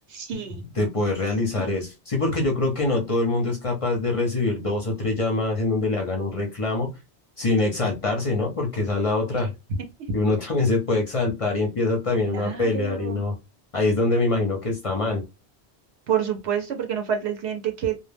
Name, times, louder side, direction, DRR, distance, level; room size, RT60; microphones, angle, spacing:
voice 1, 0.1-0.6 7.7-7.9 9.4-9.5 12.3-13.2 16.1-18.0, right 8 dB, 75° right, 3 dB, 0.8 m, -28 dB
voice 2, 0.8-6.9 7.4-9.5 10.1-13.3 13.7-15.2, left 2 dB, 40° left, 1 dB, 0.5 m, -24 dB
2.2 x 2.1 x 3.3 m, 0.25 s
omnidirectional pair, 1.1 m